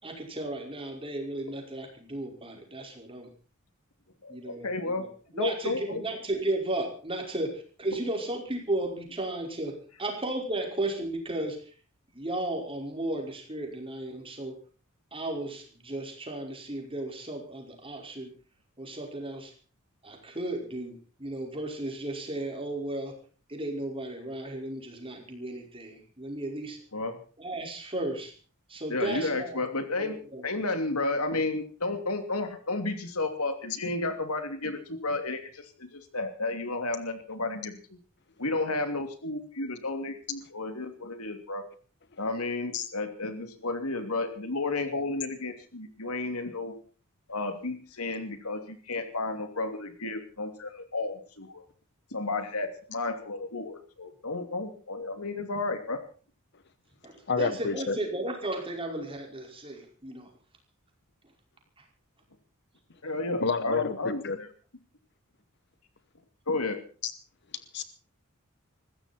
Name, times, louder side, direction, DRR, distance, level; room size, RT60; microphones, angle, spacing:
voice 1, 0.0-3.3 4.3-5.1 5.3-11.6 12.1-14.5 15.1-18.3 18.8-19.5 20.0-23.1 23.5-26.8 27.4-28.3 28.7-29.7 30.0-30.4 57.0-60.3, right 1 dB, 25° right, 1 dB, 5.2 m, -34 dB
voice 2, 4.2-5.1 5.4-6.0 26.9-27.2 28.9-38.0 38.4-41.6 42.2-46.7 47.3-51.6 52.1-56.0 63.0-64.5 66.5-66.8, left 2 dB, 85° left, 7 dB, 2.9 m, -32 dB
voice 3, 57.3-58.0 63.4-64.4 67.7-67.8, left 4 dB, 55° left, 12 dB, 1.0 m, -29 dB
20.5 x 15.5 x 4.4 m, 0.41 s
head